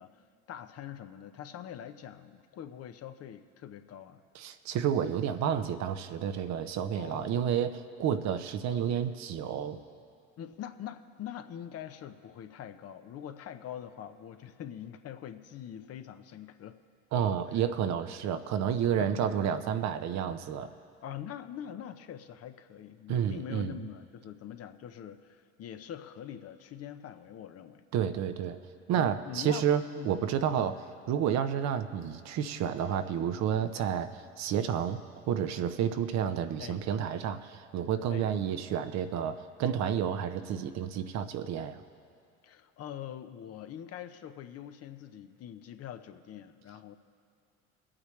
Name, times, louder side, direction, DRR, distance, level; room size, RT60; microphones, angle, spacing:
voice 1, 0.0-4.2 6.9-7.6 10.4-16.8 17.5-17.6 19.0-19.3 21.0-27.8 28.9-29.7 30.0-30.1 30.5-30.7 36.6-36.8 38.1-38.3 42.4-47.0, left 10 dB, 45° left, 9 dB, 0.8 m, -44 dB
voice 2, 4.4-9.8 17.1-20.7 23.1-23.7 27.9-28.6 28.9-30.7 31.1-34.1 34.4-35.0 35.3-41.8, right 8 dB, 50° right, 10 dB, 0.8 m, -30 dB
22.5 x 8.7 x 3.2 m, 2.6 s
hypercardioid pair, 75°, 35 cm